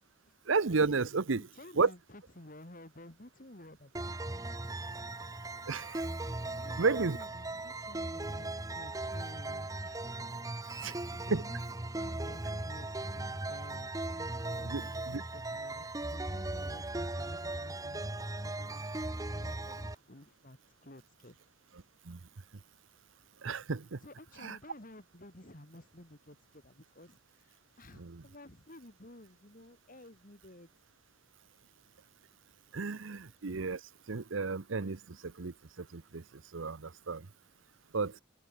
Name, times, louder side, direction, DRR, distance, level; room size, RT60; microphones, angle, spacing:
voice 1, 0.5-1.4 1.8-1.9 5.7-6.1 6.8-7.2 10.8-10.9 11.3-11.4 14.7-14.8 15.1-15.2 22.1-22.2 23.4-24.0 24.4-24.6 28.0-28.2 32.7-33.8 34.1-36.2 36.5-37.3 37.9-38.2, right 4 dB, 80° right, 0.8 m, -32 dB
voice 2, 1.3-4.4 6.5-10.1 10.7-21.4 24.0-30.7, left 1 dB, 45° left, 3.0 m, -53 dB
sound 1, 3.9-19.9, right 2 dB, 15° right, 0.9 m, -38 dB
open air
head